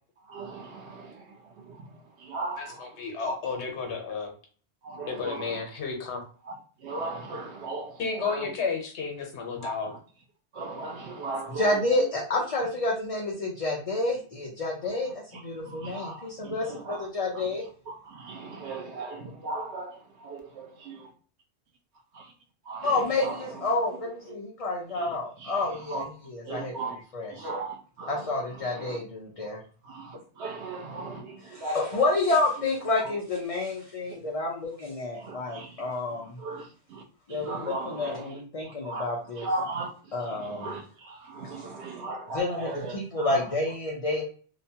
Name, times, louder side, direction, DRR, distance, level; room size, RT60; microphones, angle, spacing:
voice 1, 0.3-1.2 2.3-2.8 3.3-3.4 4.8-5.4 6.8-7.9 8.2-8.4 9.6-9.7 10.6-11.7 15.8-16.2 16.4-17.0 18.2-20.0 20.2-20.7 22.7-22.9 23.2-23.3 25.0-25.1 25.9-26.0 26.5-26.9 27.4-28.1 28.8-29.0 29.9-31.8 35.2-35.7 36.4-36.6 36.9-37.0 37.4-38.2 38.8-39.0 39.4-39.9 40.5-40.8 41.3-43.0 43.2-43.4, right 2 dB, 85° right, 1.0 m, -36 dB
voice 2, 2.6-4.3 5.1-6.2 8.0-9.9, left 5 dB, 85° left, 1.0 m, -32 dB
voice 3, 11.5-17.6 22.8-27.5 28.1-29.6 31.4-36.4 37.3-39.5 40.1-40.8 42.3-44.2, left 2 dB, 45° left, 0.5 m, -29 dB
2.9 x 2.1 x 2.7 m
omnidirectional pair, 1.1 m